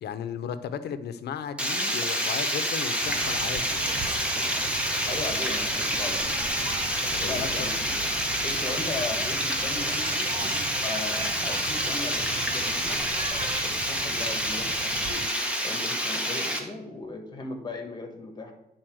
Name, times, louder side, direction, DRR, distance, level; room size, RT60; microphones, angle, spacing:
voice 1, 0.0-3.9 7.1-7.7, left 8 dB, 90° left, 11 dB, 0.7 m, -35 dB
Water, 1.6-16.6, equal, 5° right, 1.1 m, -28 dB
sound 1, 3.0-15.2, right 5 dB, 35° right, 0.5 m, -39 dB
voice 2, 5.1-6.4 7.2-8.1 8.4-10.3 10.8-15.3 15.6-18.5, left 3 dB, 25° left, 4 dB, 1.5 m, -37 dB
9.1 x 4.1 x 6.3 m, 0.87 s
wide cardioid pair, 155°, 16 cm